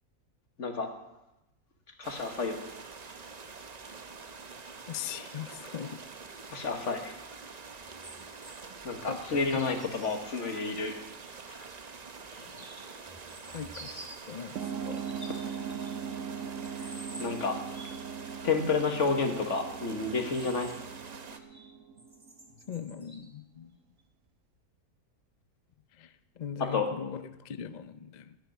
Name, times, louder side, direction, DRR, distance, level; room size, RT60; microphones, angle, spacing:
voice 1, 0.6-0.9 2.0-2.7 6.5-7.2 8.8-11.0 11.5-11.7 16.8-16.9 17.2-17.6 18.4-20.7 26.7-26.9, left 4 dB, 55° left, 5 dB, 1.8 m, -30 dB
sound 1, 2.0-21.4, right 4 dB, 35° right, 0.7 m, -46 dB
voice 2, 4.8-6.0 9.1-9.4 12.4-12.6 13.5-15.0 22.7-23.8 25.9-28.4, left 8 dB, 80° left, 12 dB, 0.4 m, -40 dB
sound 2, 7.8-11.3 12.0-14.3 14.8-16.2 16.6-18.1 19.9-21.7 22.0-23.3 24.0-24.1, right 1 dB, 15° right, 1.7 m, -51 dB
sound 3, 14.6-22.7, right 7 dB, 65° right, 1.1 m, -40 dB
11.0 x 8.0 x 9.1 m, 0.94 s
omnidirectional pair, 1.6 m